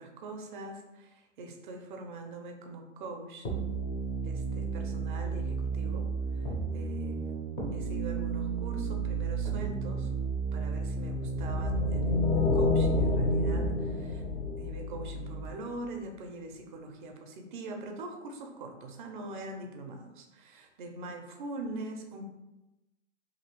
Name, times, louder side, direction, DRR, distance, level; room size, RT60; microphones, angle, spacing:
voice 1, 0.0-3.5 4.2-6.1 6.3-7.2 7.7-10.1 10.5-22.2, right 2 dB, 40° right, 4 dB, 0.5 m, -43 dB
sound 1, 3.4-15.5, right 5 dB, 15° left, 0.4 m, -33 dB
sound 2, 11.1-15.5, left 4 dB, 75° left, 0.6 m, -29 dB
2.8 x 2.7 x 2.9 m, 1.0 s
hypercardioid pair, 125°, 38 cm